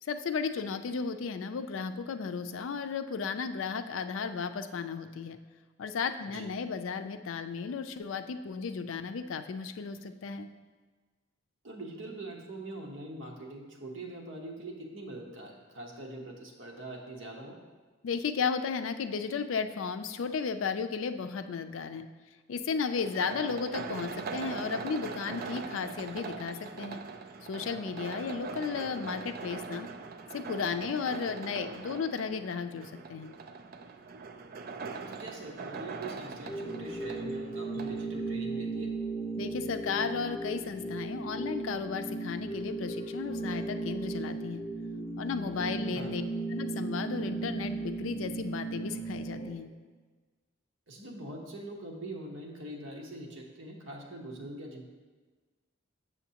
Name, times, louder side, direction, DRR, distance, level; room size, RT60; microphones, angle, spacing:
voice 1, 0.0-5.4 5.8-10.5 18.0-22.1 22.5-27.0 27.4-29.9 30.3-33.3 39.4-44.6 45.2-46.2 46.5-49.7, left 5 dB, 80° left, 9 dB, 0.4 m, -34 dB
voice 2, 11.6-17.6 35.1-38.9 45.9-46.1 50.9-54.9, right 1 dB, 70° right, 0 dB, 1.1 m, -43 dB
sound 1, 23.0-38.0, right 4 dB, 50° right, 0.4 m, -41 dB
sound 2, 36.4-49.5, right 3 dB, 45° left, 1.5 m, -36 dB
7.0 x 6.9 x 2.8 m, 1.4 s
head